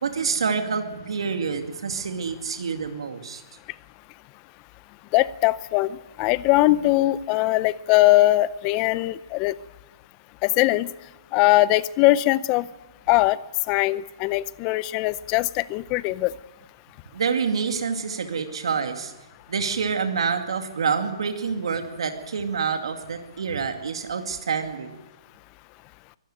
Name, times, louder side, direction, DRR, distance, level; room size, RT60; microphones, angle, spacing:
voice 1, 0.0-3.4 17.1-19.1 19.5-24.9, right 5 dB, 80° right, 5 dB, 2.3 m, -27 dB
voice 2, 5.1-9.5 10.4-10.9 11.3-12.7 13.1-13.4 13.7-16.3, left 17 dB, 30° left, 18 dB, 0.6 m, -21 dB
24.0 x 13.0 x 9.1 m, 1.1 s
hypercardioid pair, 155°, 3 cm